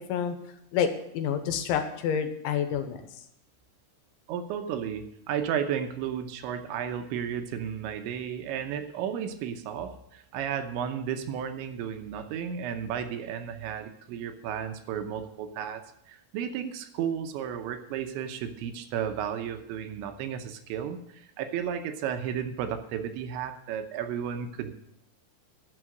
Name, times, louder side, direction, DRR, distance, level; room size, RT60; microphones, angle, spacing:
voice 1, 1.1-3.0, left 8 dB, 80° left, 7 dB, 3.2 m, -28 dB
voice 2, 4.3-24.7, right 8 dB, 80° right, 7 dB, 3.0 m, -33 dB
11.0 x 6.3 x 7.7 m, 0.78 s
omnidirectional pair, 5.6 m